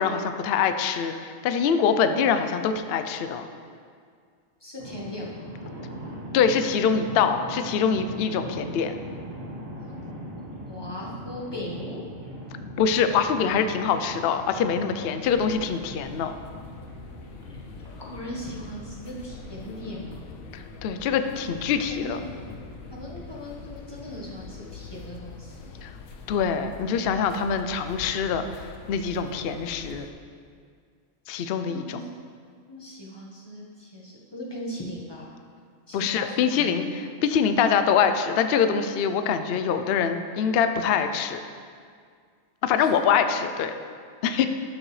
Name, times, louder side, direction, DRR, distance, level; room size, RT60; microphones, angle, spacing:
voice 1, 0.0-3.5 6.3-8.9 12.8-16.3 20.5-22.2 25.8-25.9 26.3-28.4 28.9-30.1 31.3-32.0 35.9-41.4 42.6-43.7 44.2-44.5, left 7 dB, 65° left, 8 dB, 0.6 m, -24 dB
voice 2, 4.6-5.5 10.7-12.0 18.0-20.3 21.2-21.3 21.9-22.2 22.9-25.7 31.7-32.1 32.7-35.3 35.9-37.1 42.8-42.9, left 1 dB, 20° left, -4 dB, 1.1 m, -38 dB
sound 1, 4.8-24.5, equal, 60° right, 2.0 m, -41 dB
sound 2, 15.2-30.1, left 4 dB, 90° left, 1.1 m, -44 dB
12.5 x 6.4 x 3.2 m, 2.1 s
omnidirectional pair, 1.4 m